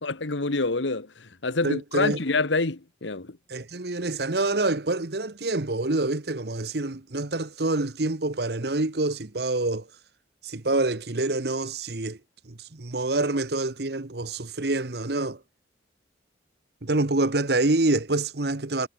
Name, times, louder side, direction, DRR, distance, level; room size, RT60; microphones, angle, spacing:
voice 1, 0.0-3.4, left 3 dB, 85° left, 1.5 m, -27 dB
voice 2, 1.6-2.2 3.5-9.9 10.4-12.2 12.4-15.4 16.8-18.9, right 2 dB, 60° right, 1.2 m, -26 dB
head